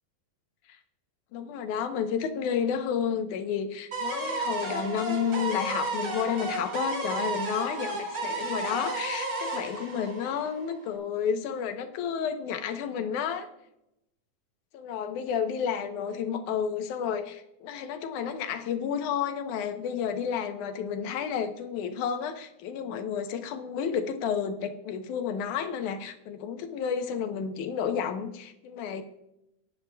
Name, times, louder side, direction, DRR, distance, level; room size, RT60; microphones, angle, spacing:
voice 1, 1.3-13.5 14.7-29.0, left 7 dB, 70° left, 7 dB, 2.1 m, -31 dB
sound 1, 3.9-10.9, right 2 dB, 40° right, 3.2 m, -33 dB
18.0 x 11.0 x 2.3 m, 0.85 s
omnidirectional pair, 4.0 m